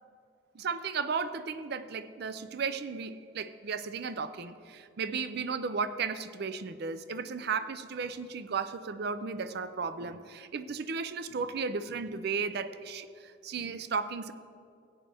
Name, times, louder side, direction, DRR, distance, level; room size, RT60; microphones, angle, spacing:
voice 1, 0.5-14.3, right 5 dB, 55° right, 12 dB, 0.4 m, -35 dB
16.0 x 8.9 x 3.4 m, 2.3 s
head